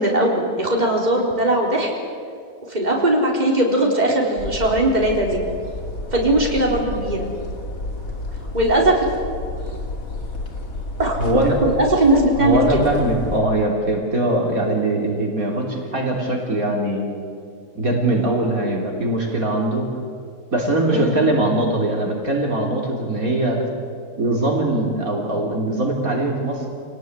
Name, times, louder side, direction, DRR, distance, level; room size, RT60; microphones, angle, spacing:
voice 1, 0.0-1.9 2.7-5.4 6.1-7.3 8.5-9.1 11.0-11.2 11.6-12.9 20.9-21.3, right 1 dB, 25° right, -1 dB, 4.1 m, -19 dB
sound 1, 4.4-13.4, left 2 dB, 60° left, 3.0 m, -31 dB
voice 2, 11.2-11.6 12.4-17.2 17.8-19.9 20.5-23.6 24.2-26.7, right 1 dB, 60° right, -1 dB, 3.9 m, -21 dB
26.5 x 19.0 x 9.5 m, 2.3 s
omnidirectional pair, 1.7 m